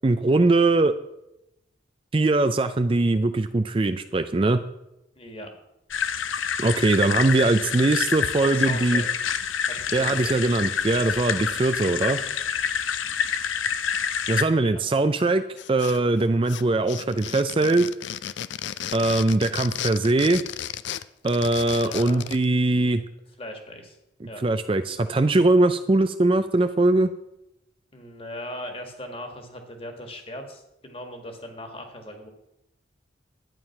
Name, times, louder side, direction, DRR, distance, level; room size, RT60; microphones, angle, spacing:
voice 1, 0.0-1.0 2.1-4.6 6.6-9.0 9.9-12.2 14.3-15.4 15.7-17.9 18.9-20.4 21.2-23.0 24.4-27.1, right 2 dB, 25° right, 10 dB, 0.4 m, -21 dB
voice 2, 5.2-5.5 8.4-9.2 9.7-10.4 10.9-11.5 14.5-15.1 21.7-22.3 23.4-24.0 24.3-24.4 27.9-32.3, left 1 dB, 30° left, 5 dB, 1.8 m, -39 dB
sound 1, 5.9-14.4, left 7 dB, 90° left, 0.8 m, -27 dB
sound 2, 15.6-16.2 16.5-22.4, left 10 dB, 65° left, 0.4 m, -34 dB
11.5 x 9.3 x 5.9 m, 0.88 s
head